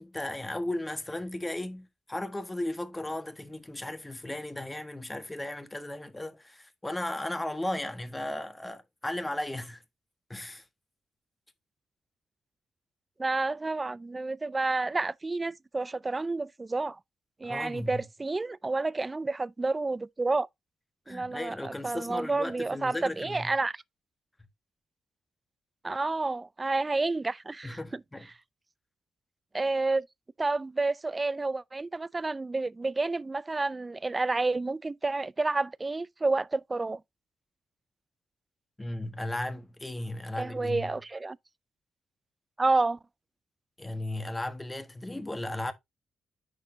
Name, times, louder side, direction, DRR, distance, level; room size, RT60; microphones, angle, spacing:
voice 1, 0.0-9.8 10.3-10.6 17.4-18.0 21.1-23.5 27.6-28.3 38.8-41.0 43.8-45.7, left 1 dB, 20° left, 1.5 m, -36 dB
voice 2, 13.2-17.0 17.4-20.5 21.1-23.7 25.8-27.8 29.5-30.0 30.4-37.0 40.4-41.4 42.6-43.0, right 3 dB, 30° right, 0.5 m, -30 dB
10.0 x 4.3 x 2.7 m
hypercardioid pair, 45°, 0 cm